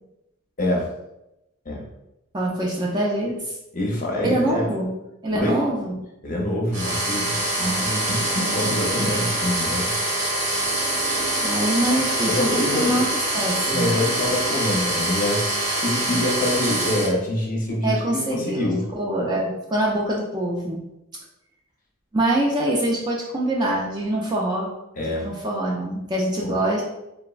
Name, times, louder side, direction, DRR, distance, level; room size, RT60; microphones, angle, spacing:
voice 1, 0.6-0.9 1.7-1.8 3.7-4.7 5.3-5.6 6.2-9.9 12.2-13.0 13.7-15.4 15.7-18.9 24.9-25.2 26.4-26.5, left 1 dB, 40° left, -2 dB, 0.6 m, -25 dB
voice 2, 2.3-3.6 4.2-5.0 5.2-6.0 7.6-7.9 11.4-13.1 13.3-13.9 17.8-20.8 22.1-24.7 25.1-26.8, right 1 dB, 20° right, -3 dB, 0.3 m, -24 dB
sound 1, 6.7-17.1, right 1 dB, 85° right, 1.0 m, -24 dB
3.3 x 2.0 x 2.3 m, 0.89 s
head